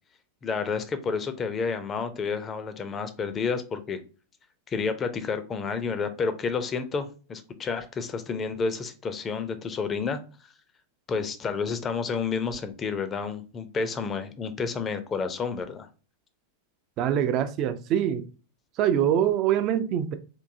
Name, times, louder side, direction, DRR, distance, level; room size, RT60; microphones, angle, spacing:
voice 1, 0.4-4.0 4.7-10.2 11.1-15.9, left 5 dB, 25° left, 0.5 m, -30 dB
voice 2, 17.0-18.3 18.8-20.1, right 10 dB, 35° right, 0.4 m, -24 dB
3.7 x 2.6 x 2.6 m
figure-of-eight pair, 90°, 0 cm